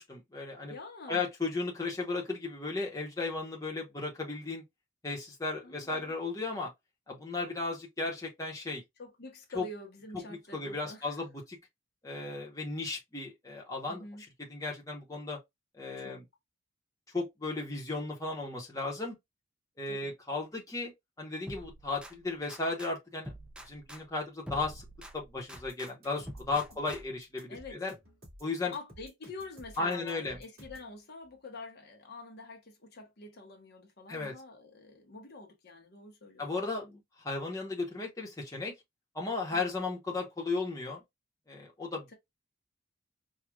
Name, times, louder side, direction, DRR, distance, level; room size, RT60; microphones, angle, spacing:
voice 1, 0.0-0.7 1.1-4.6 5.0-6.7 7.1-8.8 9.5-9.6 10.3-11.6 12.0-14.0 14.5-15.4 15.7-16.2 17.1-19.1 19.8-20.9 21.2-23.3 23.7-24.8 25.1-27.9 28.4-28.7 29.8-30.4 34.1-34.3 36.4-36.9 37.2-38.7 39.1-41.0 41.5-42.1, left 3 dB, 15° left, 1.0 m, -35 dB
voice 2, 0.7-1.3 5.6-6.1 9.0-11.2 13.9-14.3 16.0-16.2 19.9-20.1 27.5-27.8 28.7-37.0 39.5-39.7, left 2 dB, 55° left, 0.9 m, -47 dB
sound 1, 21.5-22.9 23.2-25.9 26.3-27.3, equal, 5° right, 0.4 m, -47 dB
sound 2, 25.5-30.9, equal, 50° right, 2.3 m, -53 dB
4.6 x 2.4 x 2.3 m
head